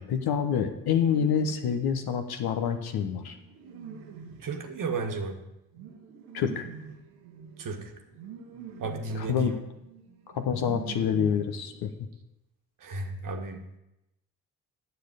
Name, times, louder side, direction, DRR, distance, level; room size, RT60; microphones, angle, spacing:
voice 1, 0.0-3.3 6.3-6.6 9.1-9.5 10.3-11.9, left 7 dB, 60° left, 7 dB, 1.0 m, -27 dB
sound 1, 1.0-1.9 2.7-11.8, right 7 dB, 75° right, 1.0 m, -45 dB
voice 2, 4.4-5.4 7.6-7.9 8.8-9.5 12.8-13.8, right 3 dB, 50° right, 4 dB, 1.4 m, -33 dB
9.6 x 6.9 x 5.1 m, 0.90 s
hypercardioid pair, 40°, 41 cm